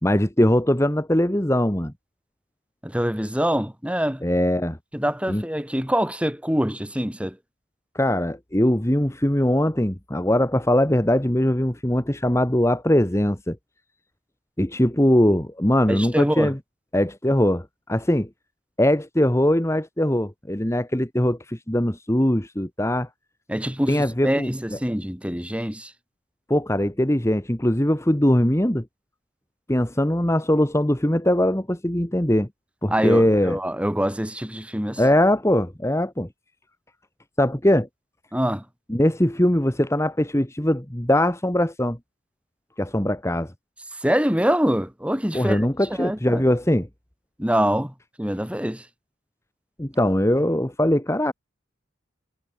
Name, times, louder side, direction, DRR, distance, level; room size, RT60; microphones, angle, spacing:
voice 1, 0.0-1.9 4.2-4.8 5.3-5.4 7.9-13.6 14.6-16.6 16.9-18.3 18.8-23.1 23.9-24.8 26.5-28.8 29.7-32.5 32.8-33.6 35.0-36.3 37.4-37.9 38.9-42.0 42.8-43.5 45.3-46.9 49.8-51.3, left 1 dB, 15° left, 1.6 m, -21 dB
voice 2, 2.8-4.2 4.9-7.4 15.9-16.5 23.5-25.9 32.9-35.0 38.3-38.6 44.0-45.7 46.0-46.4 47.4-48.8, equal, 5° right, 5.0 m, -25 dB
head